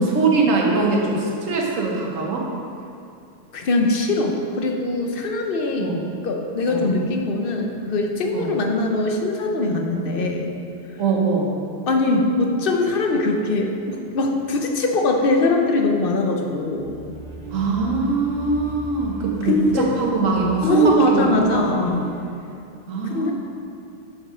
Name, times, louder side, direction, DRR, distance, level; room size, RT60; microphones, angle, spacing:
voice 1, 0.0-2.5 5.8-6.0 6.7-6.9 8.3-8.6 11.0-11.5 17.5-21.7 22.9-23.3, right 4 dB, 90° right, -1 dB, 1.4 m, -22 dB
voice 2, 3.5-5.9 6.2-10.5 11.9-16.9 19.4-20.0 20.6-22.0 23.0-23.3, left 2 dB, 50° left, 2 dB, 0.8 m, -22 dB
sound 1, 16.7-22.3, right 2 dB, 30° right, 0.7 m, -38 dB
6.6 x 5.3 x 4.9 m, 2.6 s
omnidirectional pair, 1.3 m